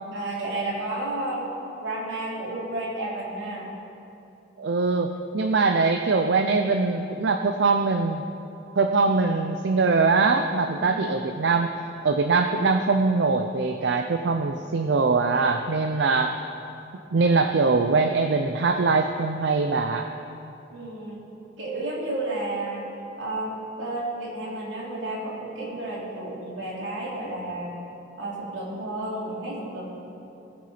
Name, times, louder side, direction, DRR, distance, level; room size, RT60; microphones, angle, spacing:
voice 1, 0.1-1.5 1.8-3.7 10.6-11.0 20.7-21.2 21.6-22.8 23.2-27.8 28.2-30.0, right 2 dB, 85° right, -5 dB, 3.3 m, -32 dB
voice 2, 4.6-8.2 8.8-11.7 12.0-16.4 17.1-20.1, right 4 dB, 65° right, 6 dB, 0.5 m, -22 dB
20.5 x 6.8 x 5.1 m, 2.8 s
head